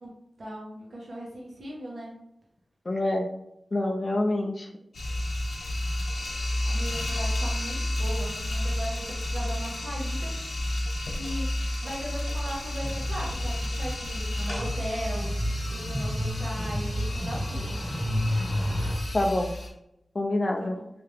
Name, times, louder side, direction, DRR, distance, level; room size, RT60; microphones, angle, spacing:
voice 1, 0.0-2.2 6.6-10.4 11.1-17.8 20.6-20.9, equal, 70° right, -4 dB, 1.2 m, -38 dB
voice 2, 2.9-3.3 3.7-4.7 19.1-19.6 20.1-20.8, left 1 dB, 45° left, 1 dB, 0.4 m, -26 dB
sound 1, 4.9-19.7, left 1 dB, 90° left, 1.1 m, -31 dB
sound 2, 12.8-19.0, equal, 30° left, 0.9 m, -31 dB
3.4 x 2.8 x 3.3 m, 0.84 s
cardioid pair, 55°, 0 cm